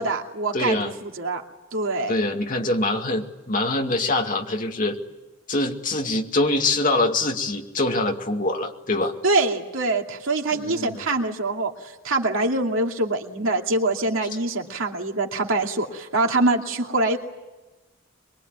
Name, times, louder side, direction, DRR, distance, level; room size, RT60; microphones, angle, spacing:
voice 1, 0.0-1.4 1.7-2.2 9.2-17.2, right 2 dB, 75° right, 2 dB, 2.5 m, -24 dB
voice 2, 0.5-0.9 2.1-5.0 5.5-9.1 10.5-11.0, left 2 dB, 40° left, 3 dB, 2.3 m, -24 dB
24.0 x 23.0 x 9.4 m, 1.1 s
head